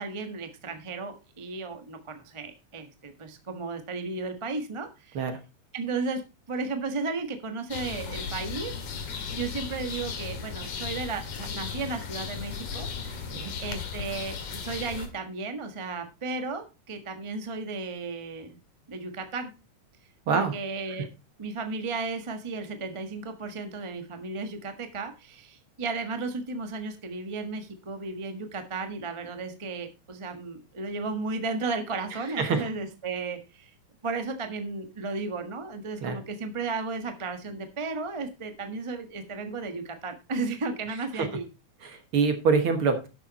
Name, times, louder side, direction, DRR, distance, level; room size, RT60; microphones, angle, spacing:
voice 1, 0.0-5.2 5.7-6.2 6.5-8.8 9.3-13.3 13.6-18.6 18.9-19.5 20.3-21.1 21.4-33.7 34.0-41.5, right 3 dB, 35° right, 6 dB, 0.4 m, -34 dB
sound 1, 7.7-15.1, left 6 dB, 90° left, 3.2 m, -36 dB
voice 2, 41.8-43.0, right 5 dB, 55° right, 7 dB, 1.8 m, -25 dB
12.0 x 7.0 x 4.1 m, 0.29 s
omnidirectional pair, 3.3 m